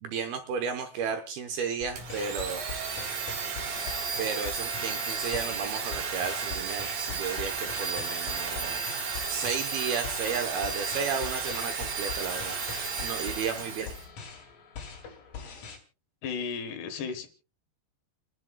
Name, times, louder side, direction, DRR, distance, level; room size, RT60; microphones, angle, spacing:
voice 1, 0.0-2.6 4.2-8.8 9.3-13.9, right 6 dB, 70° right, 6 dB, 2.5 m, -33 dB
sound 1, 1.8-15.8, left 6 dB, 50° left, 3.6 m, -43 dB
Domestic sounds home sounds, 2.0-14.1, right 5 dB, 55° right, 2.0 m, -33 dB
Camera, 4.2-4.5 5.2-5.5 6.2-6.5 7.2-7.5 8.2-8.5 9.2-9.5 10.2-10.5 11.2-11.5 12.2-12.4, left 2 dB, 30° left, 6.9 m, -47 dB
voice 2, 16.2-17.3, left 5 dB, 70° left, 8 dB, 3.2 m, -34 dB
29.5 x 10.5 x 2.3 m, 0.34 s
omnidirectional pair, 5.2 m